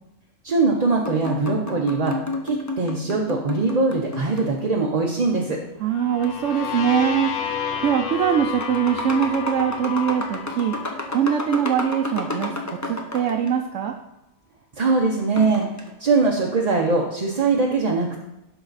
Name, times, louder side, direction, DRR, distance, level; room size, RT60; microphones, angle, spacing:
voice 1, 0.4-2.2 2.4-5.6 14.8-18.2, right 3 dB, 40° right, -1 dB, 0.7 m, -22 dB
sound 1, 1.0-4.8 6.2-7.1 7.9-8.0 8.4-13.5 15.2-15.9, left 2 dB, 20° left, 0.4 m, -32 dB
voice 2, 5.8-7.3 7.8-10.8 11.1-14.0, right 9 dB, 70° right, 3 dB, 0.9 m, -22 dB
sound 2, 5.9-11.7, left 7 dB, 65° left, 0.9 m, -31 dB
11.5 x 3.9 x 4.0 m, 0.90 s
omnidirectional pair, 1.4 m